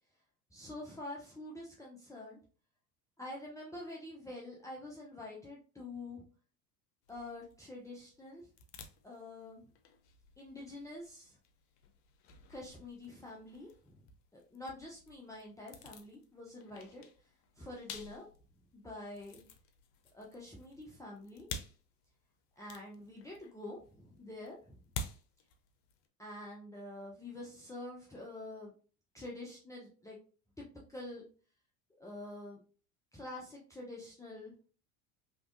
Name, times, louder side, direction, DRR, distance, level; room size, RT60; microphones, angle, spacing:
voice 1, 0.5-2.4 3.2-6.2 7.1-8.5 9.0-9.7 10.4-11.4 12.5-14.1 14.3-17.0 17.6-18.3 18.7-19.4 20.1-21.5 22.6-24.8 26.2-28.7 29.1-30.2 30.6-31.2 32.0-32.6 33.1-34.5, left 2 dB, 5° left, -4 dB, 0.7 m, -47 dB
sound 1, 7.0-26.1, left 4 dB, 55° left, 0.7 m, -51 dB
3.5 x 3.0 x 2.5 m, 0.39 s
hypercardioid pair, 75°, 45 cm